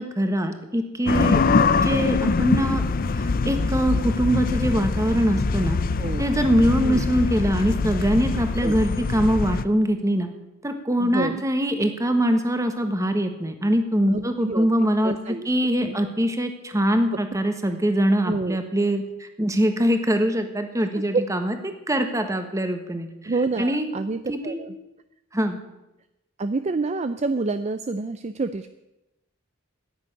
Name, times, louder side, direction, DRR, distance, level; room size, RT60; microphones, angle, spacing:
voice 1, 0.0-2.8 3.1-5.8 6.2-10.3 10.6-15.1 15.4-23.1 23.6-23.9 24.3-24.6 25.3-25.6, equal, 15° right, 7 dB, 1.3 m, -23 dB
sound 1, 1.1-9.6, left 4 dB, 45° left, 0.5 m, -23 dB
voice 2, 11.0-11.4 14.1-15.5 15.8-16.0 18.3-18.6 21.0-21.2 23.2-24.7 26.4-28.7, right 3 dB, 35° right, 11 dB, 0.5 m, -28 dB
10.5 x 8.9 x 10.0 m, 0.97 s
head